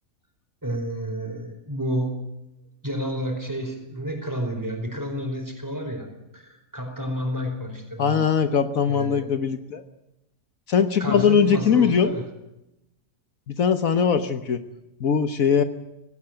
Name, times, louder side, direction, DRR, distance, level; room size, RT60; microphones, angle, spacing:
voice 1, 0.6-2.2 2.8-6.1 6.3-8.2 8.9-9.2 11.0-12.2, equal, 10° right, 4 dB, 4.8 m, -30 dB
voice 2, 8.0-9.8 10.7-12.1 13.5-14.6 15.0-15.6, left 7 dB, 70° left, 10 dB, 1.6 m, -21 dB
18.5 x 17.5 x 9.1 m, 0.91 s
omnidirectional pair, 1.5 m